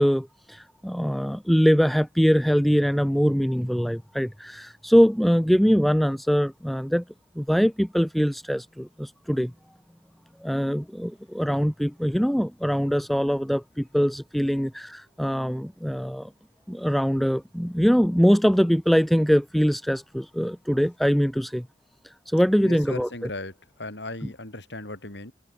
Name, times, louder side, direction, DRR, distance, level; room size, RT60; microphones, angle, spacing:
voice 1, 0.0-7.0 7.4-9.5 10.4-16.3 16.7-21.7 22.0-23.1, equal, ahead, 0.4 m, -23 dB
voice 2, 22.6-25.3, left 2 dB, 75° left, 5.6 m, -37 dB
head